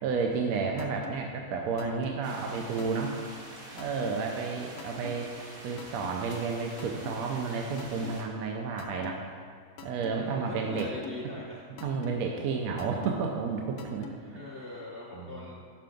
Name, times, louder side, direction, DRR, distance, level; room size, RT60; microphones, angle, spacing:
voice 1, 0.0-3.2 3.7-5.3 5.6-9.2 9.8-10.9 11.8-14.1 15.1-15.5, right 5 dB, 75° right, 1 dB, 1.0 m, -31 dB
sound 1, 0.8-1.1 1.8-2.1 2.8-3.1 3.8-4.1 4.8-5.1 5.8-6.1 6.8-7.1 7.8-8.1 8.8-9.1 9.8-10.1 10.8-11.1 11.8-12.1 12.8-13.1 13.8-14.1, left 6 dB, 85° left, 1.1 m, -42 dB
sound 2, 2.2-8.2, right 1 dB, 45° right, 1.0 m, -46 dB
voice 2, 10.1-11.6 14.3-15.6, left 2 dB, 50° left, -6 dB, 0.8 m, -41 dB
5.8 x 4.7 x 5.1 m, 2.3 s
omnidirectional pair, 1.6 m